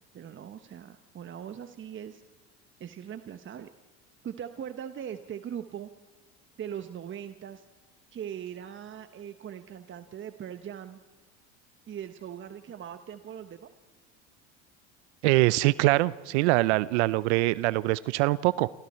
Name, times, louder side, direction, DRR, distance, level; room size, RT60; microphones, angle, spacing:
voice 1, 0.1-2.2 2.8-3.7 4.2-5.9 6.6-7.6 8.1-11.0 11.9-13.7, right 9 dB, 35° right, 10 dB, 1.1 m, -40 dB
voice 2, 15.2-18.7, right 20 dB, 75° right, 20 dB, 0.6 m, -23 dB
28.0 x 27.0 x 4.4 m, 1.3 s
supercardioid pair, 90°, 34 cm